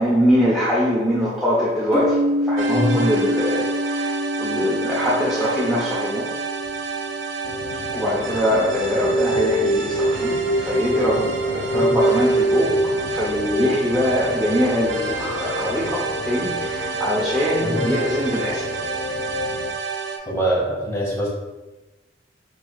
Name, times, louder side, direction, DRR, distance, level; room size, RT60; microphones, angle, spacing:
voice 1, 0.0-6.3 7.9-12.7 13.1-18.7, equal, ahead, -9 dB, 0.6 m, -23 dB
sound 1, 1.9-9.7, equal, 40° left, 1.4 m, -28 dB
sound 2, 2.6-20.2, right 5 dB, 90° right, 0.5 m, -30 dB
voice 2, 2.7-3.0 11.7-11.8 17.6-17.8 20.3-21.3, right 1 dB, 15° left, -5 dB, 1.2 m, -23 dB
sound 3, 7.4-19.7, equal, 65° left, 0.3 m, -25 dB
4.6 x 3.3 x 2.3 m, 1.1 s
head